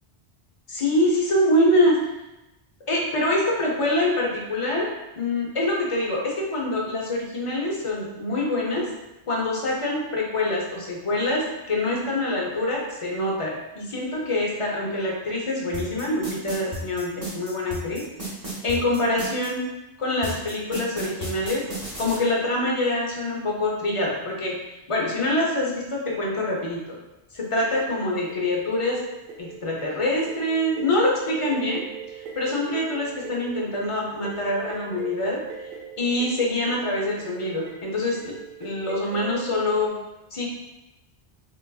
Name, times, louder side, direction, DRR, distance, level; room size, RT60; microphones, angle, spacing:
voice 1, 0.7-2.0 2.9-4.9 5.2-8.9 9.3-18.0 18.6-19.6 20.0-21.6 22.0-24.6 24.9-27.0 27.3-29.0 29.4-31.8 32.1-35.4 36.0-38.3 38.6-39.9 40.3-40.5, left 1 dB, 40° left, -3 dB, 0.6 m, -25 dB
sound 1, 15.7-19.5 20.2-22.2, right 1 dB, 20° right, 1.0 m, -33 dB
sound 2, 27.6-39.9, right 7 dB, 60° right, 0.8 m, -40 dB
3.8 x 2.4 x 2.3 m, 0.97 s
omnidirectional pair, 1.1 m